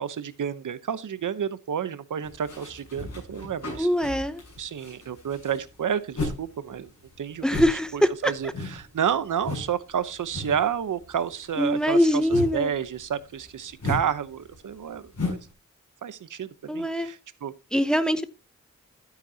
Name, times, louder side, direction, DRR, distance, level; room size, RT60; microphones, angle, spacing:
voice 1, 0.0-3.9 4.6-6.9 7.2-7.5 7.9-15.4 16.0-17.5, right 8 dB, 90° right, 0.9 m, -30 dB
sound 1, 2.2-6.5 6.7-9.8 10.0-10.7 11.0-15.5, left 2 dB, 55° left, 7.4 m, -35 dB
voice 2, 3.8-4.4 7.4-8.1 11.6-12.7 16.7-17.1 17.7-18.3, equal, 5° left, 0.7 m, -23 dB
12.0 x 9.2 x 2.8 m
wide cardioid pair, 165°, 30 cm